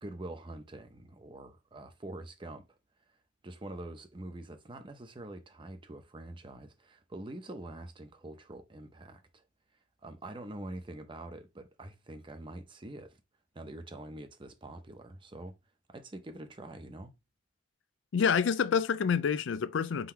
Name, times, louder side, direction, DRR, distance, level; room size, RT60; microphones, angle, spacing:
voice 1, 0.0-2.6 3.4-9.4 10.0-13.2 13.5-15.5 15.9-17.1, right 1 dB, 25° right, 0.6 m, -45 dB
voice 2, 18.1-20.1, left 6 dB, 85° left, 0.4 m, -27 dB
3.9 x 2.7 x 4.4 m
head